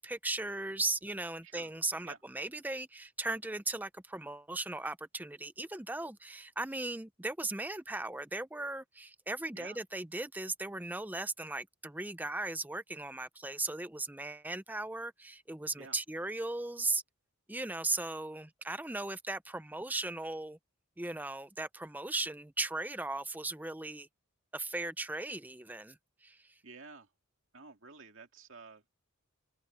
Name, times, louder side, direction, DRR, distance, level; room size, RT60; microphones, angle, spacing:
voice 1, 0.0-17.0 17.5-20.6 21.0-24.1 24.5-26.6, right 2 dB, 10° right, 0.6 m, -37 dB
voice 2, 26.6-27.1 27.5-28.9, right 4 dB, 55° right, 2.3 m, -51 dB
open air
head